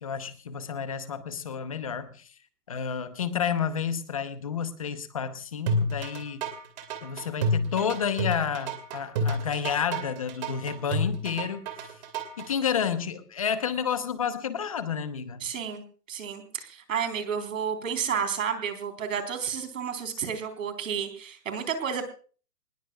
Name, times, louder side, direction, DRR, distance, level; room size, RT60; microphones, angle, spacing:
voice 1, 0.0-2.3 2.7-6.4 7.0-11.7 12.4-15.4, left 7 dB, 20° left, 12 dB, 0.8 m, -30 dB
sound 1, 5.7-12.5, equal, 25° right, 2.3 m, -29 dB
voice 2, 15.4-22.0, right 7 dB, 50° right, 8 dB, 3.9 m, -31 dB
25.5 x 20.0 x 2.3 m, 0.40 s
hypercardioid pair, 165°, 50 cm